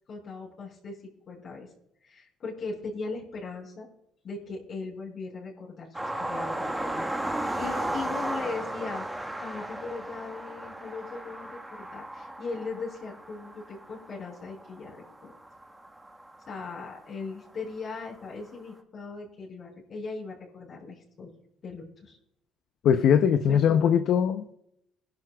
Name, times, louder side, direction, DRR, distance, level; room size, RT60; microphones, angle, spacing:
voice 1, 0.1-1.0 1.3-1.7 2.0-3.9 4.2-9.1 9.4-15.3 16.5-21.3 21.6-22.2 23.5-24.0, left 4 dB, 50° left, -3 dB, 5.5 m, -39 dB
sound 1, 5.9-17.0 18.0-18.1 18.5-18.6, right 1 dB, 10° right, 1.5 m, -35 dB
voice 2, 22.8-24.5, left 8 dB, 70° left, 8 dB, 0.7 m, -21 dB
18.5 x 12.0 x 2.4 m, 0.77 s
supercardioid pair, 85°, 0 cm